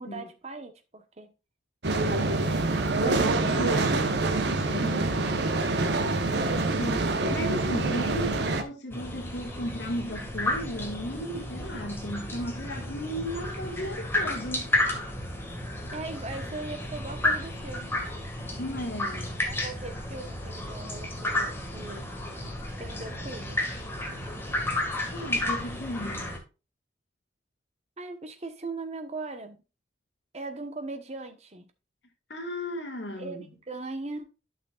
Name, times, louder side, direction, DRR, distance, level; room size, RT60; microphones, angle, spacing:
voice 1, 0.0-1.3 15.9-18.0 19.4-22.0 22.8-23.6 28.0-29.6 30.3-31.7 33.2-34.2, right 3 dB, 35° right, 1.1 m, -39 dB
sound 1, 1.8-8.6, right 2 dB, 65° right, 1.1 m, -26 dB
voice 2, 3.0-4.3 4.6-5.5 6.8-14.7 18.6-19.4 25.1-26.3 32.3-33.4, equal, 70° left, 1.7 m, -35 dB
sound 2, 8.9-26.4, left 1 dB, 15° left, 1.8 m, -32 dB
11.5 x 6.1 x 2.4 m
head